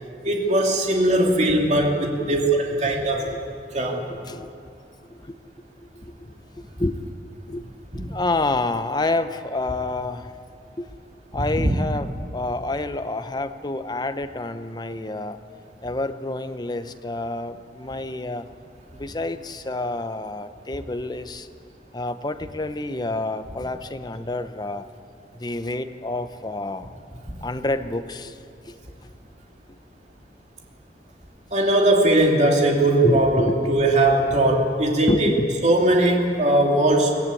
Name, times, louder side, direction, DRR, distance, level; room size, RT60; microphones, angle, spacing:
voice 1, 0.2-1.9 2.3-3.3 3.7-4.1 7.9-8.0 11.3-11.7 31.5-35.3 35.6-37.1, right 1 dB, 40° right, 0 dB, 2.9 m, -19 dB
voice 2, 2.9-3.4 4.1-4.5 5.1-5.4 5.8-6.3 6.8-7.0 7.5-7.7 7.9-10.3 10.8-10.9 11.3-15.4 15.8-18.5 18.9-21.5 21.9-24.9 25.3-26.9 27.4-28.4 28.7-28.8 29.0-29.1 33.0-33.9 35.1-35.5, left 2 dB, 25° left, 10 dB, 0.8 m, -28 dB
23.0 x 15.5 x 8.4 m, 2.5 s
head